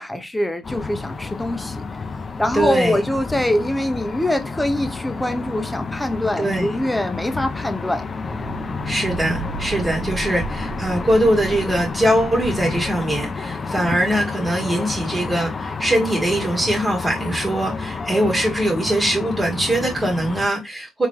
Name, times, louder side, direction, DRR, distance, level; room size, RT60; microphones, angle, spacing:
voice 1, 0.0-1.9 2.4-8.1, left 1 dB, 10° left, 0.9 m, -23 dB
sound 1, 0.6-20.5, left 4 dB, 40° left, 0.6 m, -30 dB
voice 2, 2.5-3.0 6.4-6.7 8.8-21.1, right 1 dB, 25° right, 1.6 m, -21 dB
sound 2, 8.3-13.3, right 5 dB, 55° right, 0.9 m, -34 dB
3.6 x 3.2 x 3.1 m
supercardioid pair, 60°, 0 cm